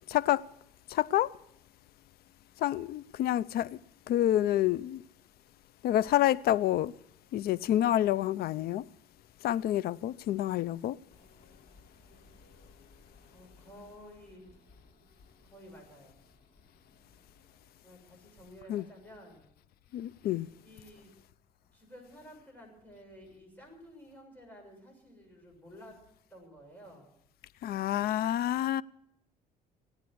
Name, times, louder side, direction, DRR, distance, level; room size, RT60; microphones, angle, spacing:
voice 1, 0.1-0.5 0.9-1.3 2.6-3.8 4.1-5.0 5.8-6.9 7.3-8.8 9.4-11.0 18.7-18.8 19.9-20.5 27.6-28.8, left 12 dB, 65° left, 0.5 m, -28 dB
sound 1, 11.1-18.0, left 3 dB, 45° left, 5.5 m, -61 dB
voice 2, 13.3-14.9 15.4-16.2 17.8-19.5 20.6-21.1 21.7-26.0 26.3-27.1, equal, 10° left, 6.9 m, -53 dB
18.0 x 9.5 x 7.8 m
cardioid pair, 110°, 17 cm